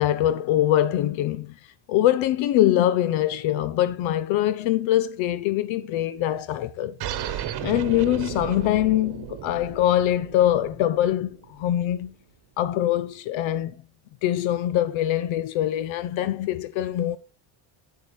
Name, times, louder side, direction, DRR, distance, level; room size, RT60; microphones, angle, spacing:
voice 1, 0.0-1.5 1.9-7.0 7.3-12.1 12.6-13.7 14.2-17.2, left 13 dB, 75° left, 0.7 m, -23 dB
sound 1, 7.0-12.1, right 11 dB, 55° right, 1.1 m, -35 dB
9.5 x 7.5 x 3.2 m
cardioid pair, 150°, 47 cm